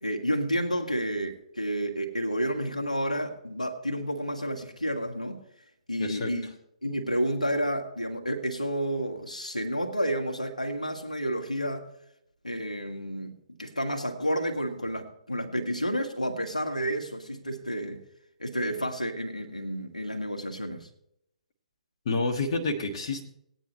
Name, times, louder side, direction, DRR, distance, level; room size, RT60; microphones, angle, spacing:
voice 1, 0.0-5.4 5.9-6.5 6.8-11.9 12.4-13.3 13.6-18.0 18.4-20.9, equal, 85° left, 3 dB, 1.6 m, -30 dB
voice 2, 6.0-6.3 22.0-23.2, left 3 dB, 45° left, 2 dB, 1.5 m, -29 dB
19.0 x 9.2 x 3.1 m, 0.77 s
figure-of-eight pair, 130°, 4 cm